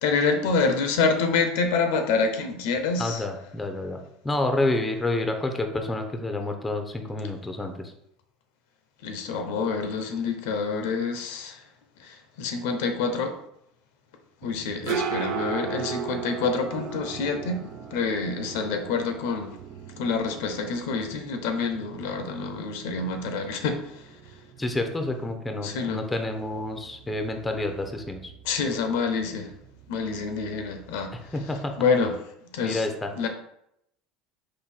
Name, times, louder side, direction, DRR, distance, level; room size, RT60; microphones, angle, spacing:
voice 1, 0.0-3.2 9.0-11.6 12.0-13.4 14.4-19.6 20.0-24.0 25.6-26.1 28.4-29.5 29.9-31.2 31.8-32.2 32.5-32.9 33.2-33.3, left 4 dB, 80° left, 6 dB, 0.6 m, -27 dB
voice 2, 3.0-4.0 4.2-7.9 24.6-28.3 31.3-31.7 32.6-33.1, left 2 dB, 10° left, 5 dB, 0.6 m, -29 dB
sound 1, 14.4-31.9, right 7 dB, 55° right, 0.5 m, -38 dB
3.9 x 2.6 x 4.2 m, 0.76 s
supercardioid pair, 115°, 0 cm